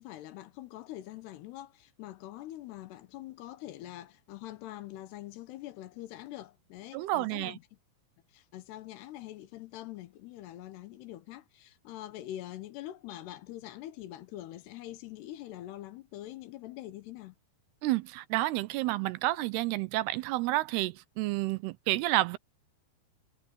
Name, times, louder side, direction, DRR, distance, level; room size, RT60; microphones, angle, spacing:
voice 1, 0.0-7.6 8.3-17.4, left 14 dB, 80° left, 3.1 m, -44 dB
voice 2, 6.9-7.6 17.8-22.4, right 18 dB, 80° right, 2.7 m, -30 dB
omnidirectional pair, 4.9 m